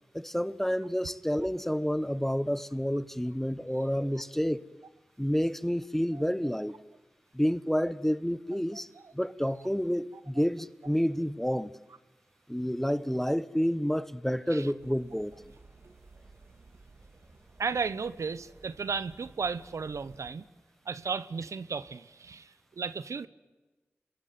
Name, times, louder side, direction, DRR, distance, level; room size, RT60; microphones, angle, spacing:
voice 1, 0.1-4.6 5.2-6.7 7.3-8.9 9.1-11.7 12.5-15.3, equal, 5° left, 1.3 m, -29 dB
sound 1, 14.8-20.3, right 3 dB, 55° right, 3.1 m, -56 dB
voice 2, 17.6-20.4 20.8-23.3, right 5 dB, 85° right, 1.0 m, -34 dB
27.0 x 22.5 x 9.4 m
cardioid pair, 40°, 5 cm